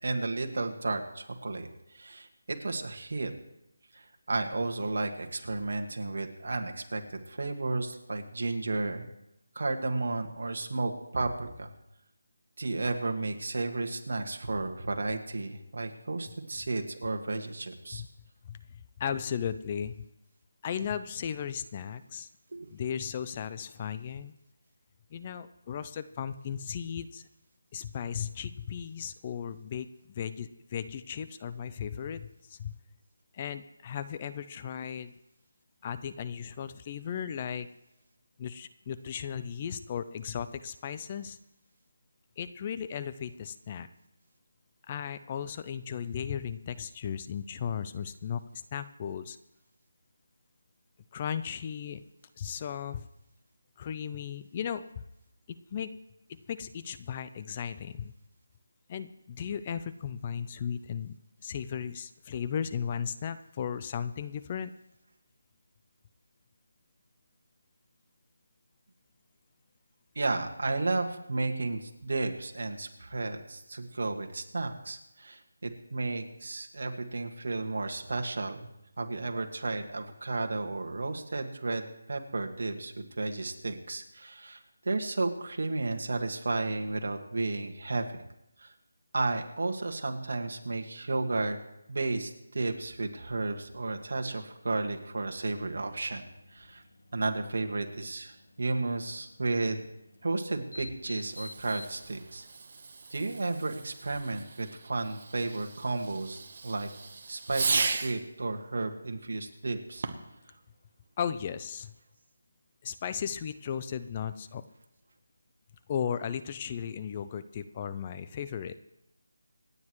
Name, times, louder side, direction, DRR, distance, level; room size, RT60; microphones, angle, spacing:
voice 1, 0.0-3.3 3.9-9.1 9.5-11.7 12.6-18.0 22.5-22.7 70.1-78.7 79.0-84.6 84.8-88.2 88.6-88.7 89.1-91.6 91.9-96.8 97.1-99.8 100.2-102.5 103.1-106.9 107.3-110.1, right 3 dB, 65° right, 4 dB, 1.8 m, -33 dB
voice 2, 18.5-20.0 20.6-22.3 22.7-24.3 25.1-27.2 27.7-32.7 33.3-35.1 35.8-37.7 38.4-41.4 42.4-43.9 44.9-48.4 48.7-49.4 51.1-52.0 52.4-53.1 53.8-55.0 55.5-55.9 56.3-58.1 58.9-61.1 61.4-64.7 111.2-111.9 112.8-114.6 115.9-118.8, left 8 dB, 25° left, 13 dB, 0.5 m, -36 dB
sound 1, 93.6-102.3, left 2 dB, 75° left, 1.4 m, -53 dB
Fireworks, 101.2-108.3 109.9-110.4, right 4 dB, 45° right, 1.1 m, -36 dB
26.5 x 9.6 x 3.2 m, 0.85 s
figure-of-eight pair, 165°, 0 cm